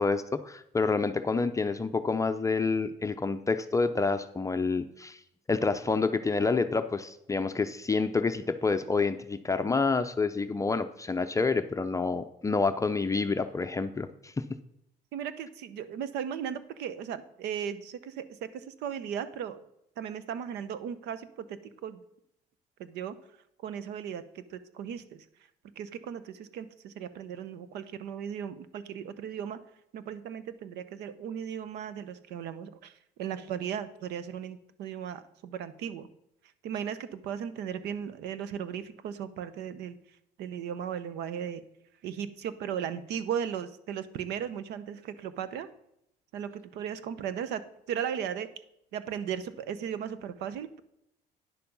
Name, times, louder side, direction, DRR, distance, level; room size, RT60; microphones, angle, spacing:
voice 1, 0.0-5.2 5.5-14.4, left 4 dB, 20° left, 8 dB, 0.5 m, -28 dB
voice 2, 15.1-19.6 20.0-22.0 22.8-23.2 23.6-25.2 25.8-29.6 29.9-36.1 36.6-40.0 40.4-41.6 42.0-45.7 46.3-47.6 47.9-48.5 48.9-50.8, right 8 dB, 85° right, 15 dB, 0.9 m, -36 dB
10.0 x 6.9 x 5.4 m, 0.78 s
cardioid pair, 110°, 17 cm